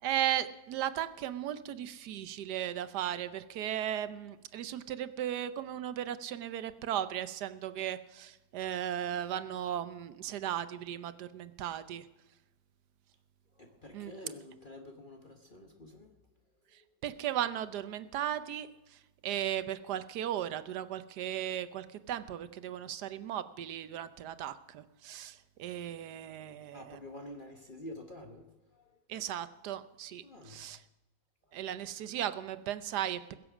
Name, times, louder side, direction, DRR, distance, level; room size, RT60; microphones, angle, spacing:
voice 1, 0.0-12.1 13.9-14.1 16.7-27.0 29.1-30.8 31.5-33.3, right 11 dB, 80° right, 1.3 m, -36 dB
voice 2, 13.5-16.3 16.8-16.9 26.7-29.0 30.2-30.7 31.4-31.7, left 1 dB, 35° left, 1.1 m, -49 dB
21.0 x 7.6 x 6.1 m
omnidirectional pair, 1.7 m